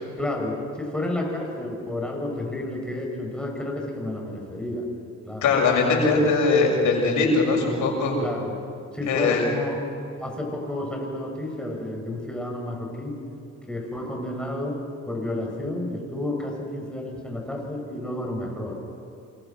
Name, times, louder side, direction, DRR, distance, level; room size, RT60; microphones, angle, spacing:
voice 1, 0.2-4.9 5.3-5.6 6.2-6.3 8.2-8.5 8.9-9.8 10.2-13.2 13.7-18.8, left 1 dB, 5° left, 0 dB, 7.5 m, -31 dB
voice 2, 5.4-8.2 9.1-9.4, left 3 dB, 80° left, 0 dB, 7.0 m, -21 dB
28.5 x 26.0 x 6.2 m, 2.5 s
cardioid pair, 90°, 30 cm